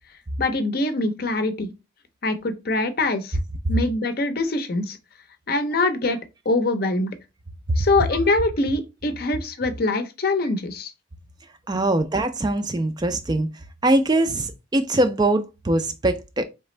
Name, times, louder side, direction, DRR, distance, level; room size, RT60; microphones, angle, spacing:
voice 1, 0.4-1.7 2.2-3.4 3.7-5.0 5.5-6.2 6.5-7.1 7.8-10.9, left 2 dB, 50° left, 0.6 m, -23 dB
voice 2, 11.7-13.5 13.8-16.4, right 1 dB, 20° right, 0.3 m, -22 dB
4.0 x 3.4 x 3.1 m
head